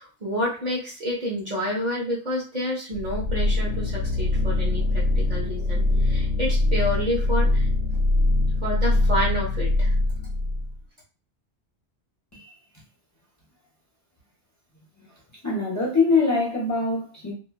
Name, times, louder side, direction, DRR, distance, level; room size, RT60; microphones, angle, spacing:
voice 1, 0.0-7.7 8.6-9.9, equal, 45° right, -4 dB, 0.7 m, -29 dB
sound 1, 2.9-10.8, left 2 dB, 85° left, 0.9 m, -23 dB
voice 2, 15.4-17.3, left 3 dB, 20° left, -4 dB, 0.7 m, -23 dB
3.0 x 2.3 x 2.3 m, 0.38 s
omnidirectional pair, 1.2 m